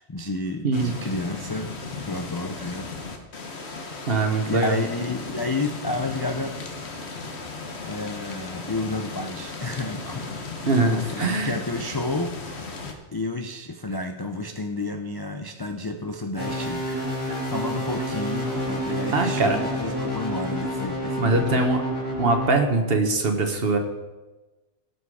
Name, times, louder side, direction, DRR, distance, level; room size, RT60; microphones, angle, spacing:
voice 1, 0.0-1.7 2.0-3.0 4.5-6.6 7.8-10.3 10.8-12.8 13.1-16.8 17.4-21.6, left 2 dB, 40° left, 5 dB, 0.3 m, -31 dB
sound 1, 0.7-12.9, left 3 dB, 60° left, 1.5 m, -36 dB
voice 2, 4.1-4.8 10.7-11.6 17.3-17.5 19.1-19.6 21.2-21.8 22.2-23.8, right 3 dB, 50° right, 5 dB, 1.4 m, -22 dB
sound 2, 16.4-22.5, equal, 80° left, 3.0 m, -29 dB
17.5 x 5.9 x 4.8 m, 1.1 s
omnidirectional pair, 1.3 m